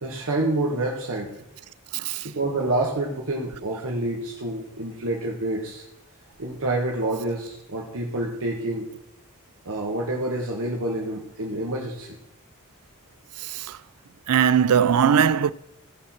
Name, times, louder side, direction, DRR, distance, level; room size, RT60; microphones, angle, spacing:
voice 1, 0.0-1.4 2.2-5.8 6.4-8.9 9.6-12.2, right 2 dB, 65° right, 1.4 m, -28 dB
voice 2, 1.9-2.3 13.4-13.8 14.3-15.5, right 8 dB, 85° right, 0.4 m, -20 dB
16.5 x 5.9 x 4.3 m
head